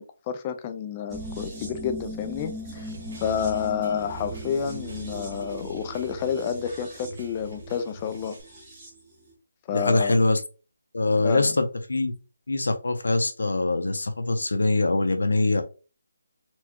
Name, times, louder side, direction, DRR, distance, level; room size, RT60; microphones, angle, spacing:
voice 1, 0.0-2.9 3.2-8.4 9.7-10.2 11.2-11.6, left 7 dB, 20° left, 0.3 m, -29 dB
sound 1, 1.1-9.0 9.3-9.4, right 1 dB, 10° right, 1.0 m, -39 dB
sound 2, 2.8-8.4, right 1 dB, 50° right, 1.4 m, -45 dB
voice 2, 9.7-10.4 10.9-12.1 12.5-15.6, left 2 dB, 85° left, 0.6 m, -23 dB
4.3 x 2.2 x 2.8 m
hypercardioid pair, 170°, 0 cm